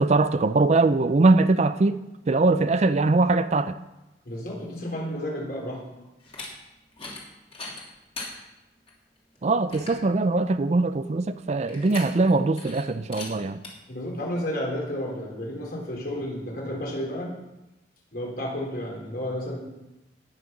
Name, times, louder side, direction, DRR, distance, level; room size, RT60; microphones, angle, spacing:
voice 1, 0.0-2.0 2.3-3.8 9.4-13.6, right 3 dB, 40° right, 12 dB, 0.4 m, -21 dB
voice 2, 4.2-5.8 13.9-17.3 18.1-19.6, equal, 55° left, -3 dB, 4.3 m, -31 dB
sound 1, 6.2-6.5 6.9-7.2 7.5-8.3 8.9-9.0 9.4-9.5 9.7-10.0 11.7-12.3 12.6-12.8 13.1-13.3 13.6-13.7, left 3 dB, 35° left, 2.9 m, -38 dB
18.5 x 6.5 x 6.0 m, 0.97 s
head